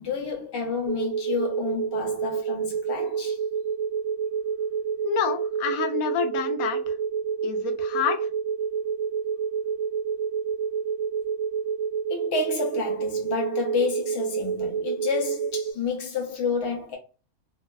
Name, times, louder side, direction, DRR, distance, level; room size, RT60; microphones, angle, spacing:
voice 1, 0.0-3.4 12.1-17.0, left 5 dB, 30° left, 0.5 m, -30 dB
sound 1, 0.9-15.7, right 6 dB, 75° right, 0.9 m, -28 dB
voice 2, 5.0-6.9 7.4-8.3, left 8 dB, 85° left, 1.0 m, -28 dB
3.0 x 2.0 x 2.2 m
omnidirectional pair, 1.5 m